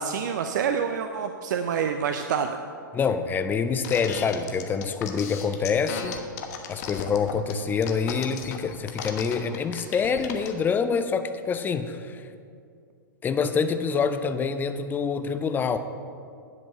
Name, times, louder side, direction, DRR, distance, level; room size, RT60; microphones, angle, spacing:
voice 1, 0.0-2.6, right 7 dB, 60° right, 7 dB, 0.5 m, -27 dB
voice 2, 2.9-6.2 6.7-12.3 13.2-15.8, left 5 dB, 15° left, 10 dB, 0.6 m, -26 dB
sound 1, 3.8-10.5, left 8 dB, 50° left, 1.1 m, -35 dB
10.5 x 5.4 x 6.6 m, 2.3 s
hypercardioid pair, 110°, 11 cm